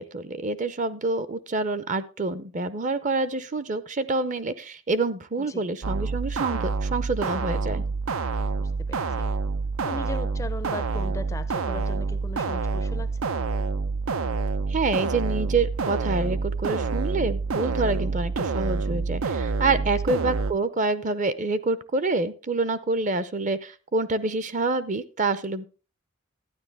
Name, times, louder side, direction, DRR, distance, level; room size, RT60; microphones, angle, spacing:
voice 1, 0.0-7.8 14.7-25.7, right 3 dB, 35° right, 0.7 m, -27 dB
sound 1, 5.8-20.5, right 4 dB, 85° right, 0.6 m, -27 dB
voice 2, 8.6-9.3 9.8-13.2, left 2 dB, 15° left, 0.4 m, -38 dB
12.5 x 9.8 x 3.4 m
head